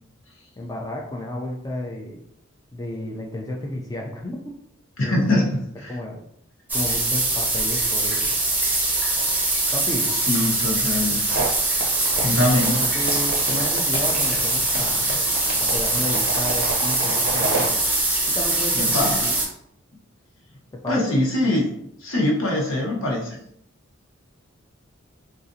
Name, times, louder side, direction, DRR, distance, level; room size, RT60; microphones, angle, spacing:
voice 1, 0.6-2.2 2.7-4.5 5.0-5.4 5.9-6.2 6.7-8.3 9.7-10.1 12.4-15.1 15.6-17.8 18.3-19.3 20.8-21.2, left 1 dB, 15° left, -1 dB, 0.3 m, -32 dB
voice 2, 5.0-6.0 10.3-11.2 12.2-12.7 18.7-19.3 20.9-21.7 22.0-23.4, left 1 dB, 75° left, -3 dB, 1.0 m, -23 dB
sound 1, 6.7-19.5, right 2 dB, 10° right, 0.7 m, -23 dB
sound 2, 11.3-17.7, right 4 dB, 65° right, 0.5 m, -30 dB
sound 3, 12.6-15.7 16.0-16.2 16.6-16.9 17.6-17.8, left 1 dB, 50° left, 0.7 m, -36 dB
3.8 x 2.4 x 2.6 m, 0.72 s
head